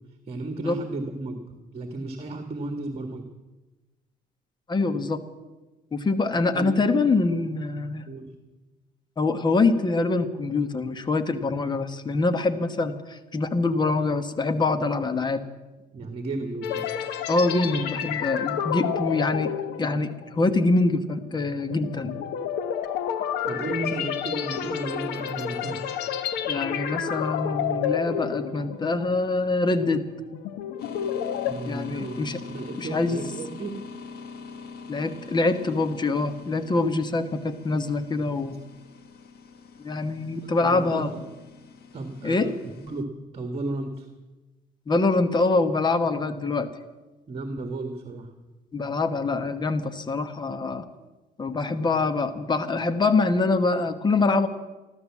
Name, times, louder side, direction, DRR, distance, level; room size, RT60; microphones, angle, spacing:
voice 1, 0.3-1.4 1.7-3.3 6.3-7.1 8.1-8.3 15.9-16.9 23.4-25.8 31.5-33.8 40.6-41.2 41.9-42.4 42.8-43.0 43.3-44.1 47.3-48.3, right 2 dB, 35° right, 6 dB, 1.7 m, -34 dB
voice 2, 4.7-5.2 5.9-8.0 9.2-15.4 17.3-19.5 19.8-22.1 26.5-30.0 31.6-32.4 32.8-33.2 34.9-38.6 39.8-41.1 42.2-42.5 44.9-46.7 48.7-50.8 51.4-54.5, left 3 dB, 25° left, 10 dB, 1.2 m, -24 dB
sound 1, 16.6-29.1 29.5-29.7 30.2-31.5, left 9 dB, 85° left, 1.1 m, -30 dB
sound 2, 30.8-43.0, left 5 dB, 70° left, 1.5 m, -43 dB
14.5 x 12.5 x 7.2 m, 1.1 s
cardioid pair, 110°, 17 cm